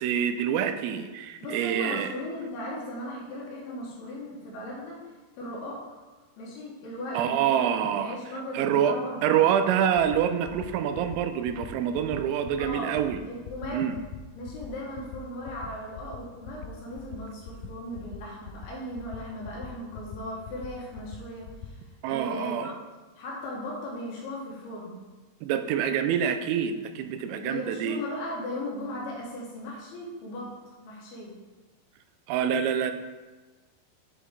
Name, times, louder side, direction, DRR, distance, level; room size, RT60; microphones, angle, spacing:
voice 1, 0.0-2.1 7.1-8.1 8.5-13.2 13.7-14.0 22.0-22.7 25.4-28.0 32.3-32.9, right 9 dB, 85° right, 9 dB, 3.2 m, -26 dB
voice 2, 1.4-5.1 5.4-5.9 6.4-9.4 12.6-12.9 13.3-13.9 14.4-21.8 22.1-22.7 23.2-25.0 27.3-30.5 30.8-31.4, left 1 dB, 70° left, -4 dB, 2.6 m, -37 dB
sound 1, 9.7-9.8 10.0-10.2 10.5-10.7 11.0-11.2 11.5-11.7 12.0-12.2 12.5-12.7 13.0-13.2 13.5-13.7 14.0-14.2 14.5-14.7 15.0-15.2 15.5-15.7 16.0-16.2 16.5-16.7 17.0-17.2 17.5-17.7 18.0-18.2 18.5-18.7 19.0-19.2 19.5-19.7 20.0-20.2 20.5-20.7 21.0-21.2 21.5-21.7, left 13 dB, 90° left, 3.2 m, -41 dB
8.2 x 5.0 x 3.8 m, 1.2 s
omnidirectional pair, 5.8 m